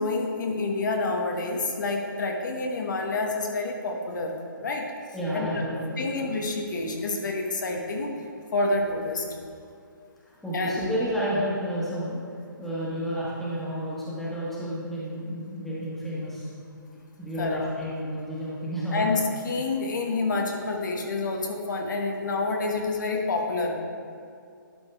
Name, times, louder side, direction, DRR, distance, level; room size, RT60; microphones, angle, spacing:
voice 1, 0.0-4.3 4.6-4.9 5.3-5.5 6.0-8.1 8.5-9.2 10.5-10.9 17.4-17.6 18.9-23.7, left 3 dB, 60° left, 1 dB, 1.1 m, -28 dB
voice 2, 5.1-6.2 10.2-12.2 12.6-16.5 17.2-19.1, equal, ahead, -9 dB, 1.5 m, -31 dB
11.5 x 5.3 x 3.4 m, 2.4 s
hypercardioid pair, 150°, 11 cm